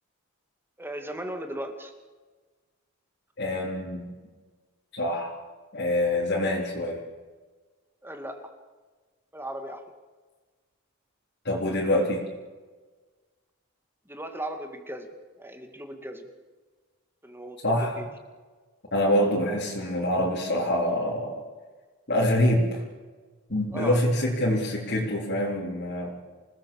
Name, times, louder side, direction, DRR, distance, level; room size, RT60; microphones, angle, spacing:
voice 1, 0.8-1.9 8.0-8.5 9.3-9.8 14.1-16.3 17.2-18.2 23.7-24.3, right 1 dB, 10° right, 6 dB, 2.3 m, -37 dB
voice 2, 3.4-4.1 4.9-5.4 5.7-7.0 11.4-12.3 17.6-18.0 18.9-21.4 22.1-22.8 23.5-26.2, left 1 dB, 50° left, -4 dB, 4.1 m, -25 dB
28.0 x 18.5 x 7.2 m, 1.4 s
head